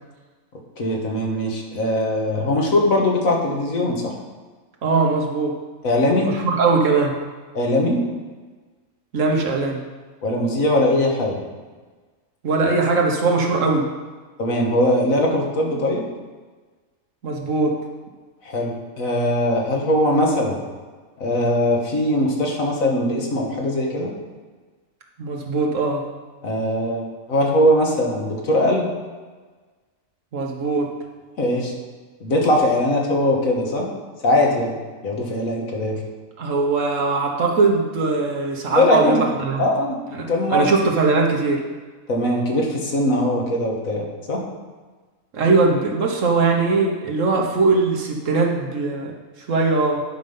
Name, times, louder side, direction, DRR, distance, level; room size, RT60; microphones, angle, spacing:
voice 1, 0.8-4.1 5.8-6.3 7.5-8.0 10.2-11.4 14.4-16.0 18.4-20.6 21.2-24.1 26.4-28.9 31.4-31.7 32.2-33.9 34.2-34.8 35.0-36.0 38.8-39.2 39.6-40.0 40.3-40.7 42.1-44.4, left 1 dB, 85° left, -1 dB, 2.0 m, -20 dB
voice 2, 4.8-5.6 6.2-7.2 9.1-9.8 12.4-13.9 17.2-17.8 25.2-26.0 30.3-30.9 36.4-39.6 40.1-41.6 45.3-49.1 49.5-50.0, right 3 dB, 70° right, 1 dB, 1.6 m, -20 dB
10.0 x 5.3 x 5.6 m, 1.4 s
omnidirectional pair, 1.4 m